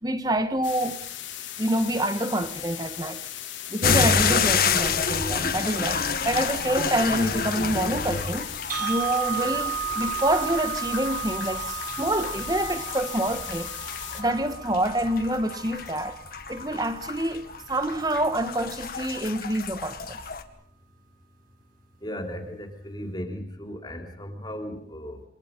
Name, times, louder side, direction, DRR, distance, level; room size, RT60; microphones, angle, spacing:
voice 1, 0.0-1.0 1.6-3.2 3.7-13.7 14.1-16.2 16.5-20.2, right 1 dB, 20° right, 1.7 m, -27 dB
sound 1, 0.6-14.2, left 11 dB, 90° left, 3.9 m, -38 dB
sound 2, 3.8-20.4, left 5 dB, 50° left, 2.1 m, -29 dB
sound 3, 8.7-16.7, right 9 dB, 50° right, 5.6 m, -34 dB
voice 2, 22.0-25.2, equal, 20° left, 3.7 m, -36 dB
28.5 x 24.5 x 5.6 m
head